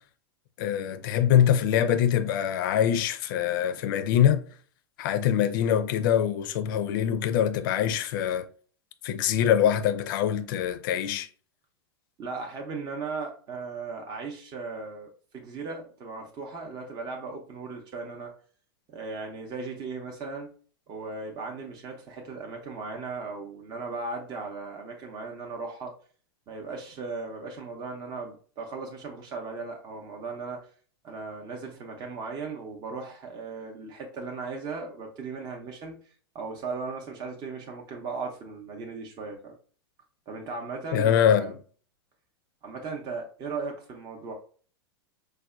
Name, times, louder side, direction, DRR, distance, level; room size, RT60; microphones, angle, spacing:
voice 1, 0.6-4.5 5.0-8.5 9.0-11.3 40.9-41.6, left 9 dB, 55° left, 0.4 m, -24 dB
voice 2, 12.2-18.3 18.9-20.5 20.9-25.9 26.5-30.7 31.0-39.5 40.3-41.5 42.6-44.3, right 4 dB, 30° right, 0.6 m, -37 dB
4.7 x 2.2 x 2.3 m
figure-of-eight pair, 95°, 13 cm